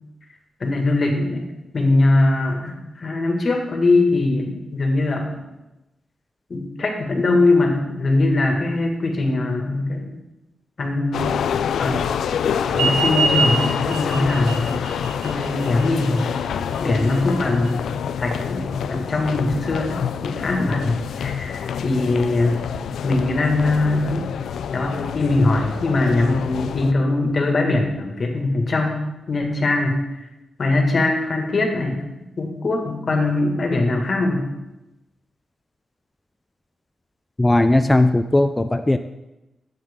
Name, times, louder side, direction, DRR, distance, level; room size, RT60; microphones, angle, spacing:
voice 1, 0.6-1.5 1.7-5.2 6.5-10.1 10.8-11.5 11.8-12.1 12.8-14.8 15.2-16.3 16.8-17.9 18.2-22.6 23.0-24.3 24.7-29.0 29.3-30.0 30.6-32.0 32.4-34.5, left 2 dB, 45° left, 2 dB, 1.9 m, -21 dB
sound 1, 11.1-26.9, left 8 dB, 90° left, 0.3 m, -27 dB
sound 2, 12.7-17.7, right 4 dB, 85° right, 0.9 m, -26 dB
voice 2, 37.4-39.0, left 1 dB, 15° left, 8 dB, 0.4 m, -17 dB
12.5 x 8.0 x 3.7 m, 0.98 s
cardioid pair, 100°, 0 cm